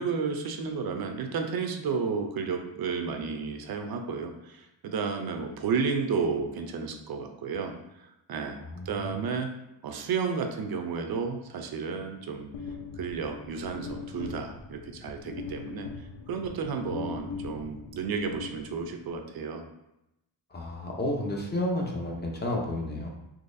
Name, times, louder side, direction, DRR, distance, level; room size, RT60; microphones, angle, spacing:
voice 1, 0.0-7.7 8.0-8.6 8.9-9.5 9.8-12.5 13.0-15.9 16.3-19.6, right 5 dB, 50° right, 5 dB, 0.5 m, -32 dB
voice 2, 8.7-9.2 20.5-23.1, left 1 dB, 20° left, -1 dB, 0.6 m, -31 dB
sound 1, 12.5-19.1, left 4 dB, 70° left, 0.6 m, -41 dB
3.9 x 3.0 x 2.5 m, 0.89 s
wide cardioid pair, 145°, 47 cm